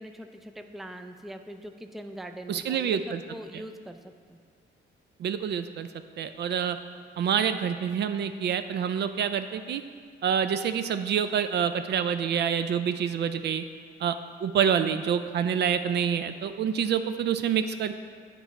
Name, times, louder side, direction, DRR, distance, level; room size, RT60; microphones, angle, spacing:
voice 1, 0.0-4.4, right 1 dB, ahead, 6 dB, 0.4 m, -42 dB
voice 2, 2.5-3.2 5.2-5.9 6.2-6.8 7.2-9.8 10.2-13.6 14.0-14.2 14.4-18.0, right 8 dB, 60° right, 10 dB, 0.4 m, -27 dB
8.8 x 4.6 x 4.1 m, 2.2 s
cardioid pair, 90°, 20 cm